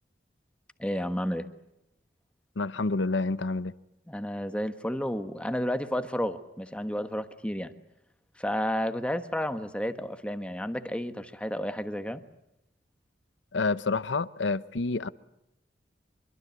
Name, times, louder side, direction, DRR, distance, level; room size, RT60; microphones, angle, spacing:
voice 1, 0.8-1.5 4.1-7.7 8.4-12.2, equal, 5° left, 1.3 m, -31 dB
voice 2, 2.6-3.7 13.5-15.1, left 3 dB, 80° left, 0.9 m, -28 dB
25.5 x 23.0 x 8.1 m
head